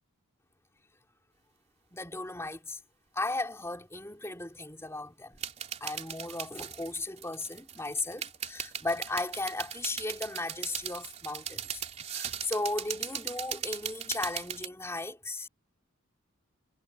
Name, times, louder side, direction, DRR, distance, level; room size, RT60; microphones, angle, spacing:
voice 1, 1.9-2.8 3.1-5.4 5.8-11.8 12.1-15.5, left 2 dB, 10° left, 3.6 m, -36 dB
sound 1, 5.3-14.7, right 8 dB, 30° right, 3.7 m, -39 dB
head